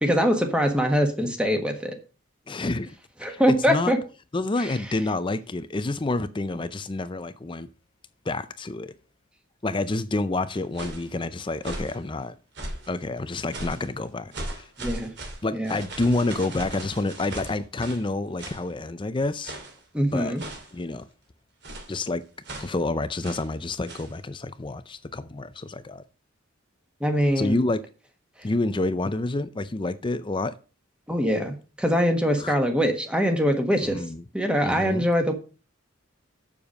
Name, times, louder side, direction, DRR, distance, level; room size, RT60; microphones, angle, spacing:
voice 1, 0.0-1.9 3.2-4.0 14.8-15.1 15.5-15.8 19.9-20.4 27.0-27.5 31.1-34.0 34.3-35.3, equal, 5° right, 1.4 m, -23 dB
voice 2, 2.5-3.0 3.2-3.9 4.3-7.7 8.3-8.9 9.6-12.3 12.9-14.7 15.4-19.5 20.1-20.3 20.7-21.1 21.9-22.2 22.6-26.0 27.4-27.8 28.4-30.5 32.4-32.6 33.8-34.2 34.6-35.1, left 2 dB, 25° left, 0.5 m, -28 dB
sound 1, 10.5-11.1 11.6-12.0 12.5-13.0 13.5-13.9 14.3-18.1 18.4-18.7 19.4-19.8 20.4-20.8 21.6-22.0 22.4-22.8 23.2-23.5 23.9-24.1, right 1 dB, 55° right, 2.7 m, -38 dB
7.1 x 7.0 x 6.3 m
head